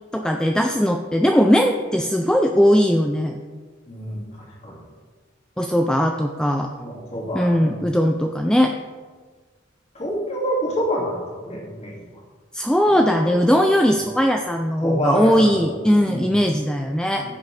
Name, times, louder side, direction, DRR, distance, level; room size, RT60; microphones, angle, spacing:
voice 1, 0.1-3.4 5.6-6.7 7.3-8.8 12.5-17.3, equal, 5° left, 3 dB, 0.4 m, -19 dB
voice 2, 3.9-4.8 6.8-7.8 9.9-12.1 12.9-13.3 14.8-16.4 17.2-17.3, equal, 35° left, -3 dB, 2.4 m, -28 dB
15.5 x 6.8 x 3.3 m, 1.5 s
head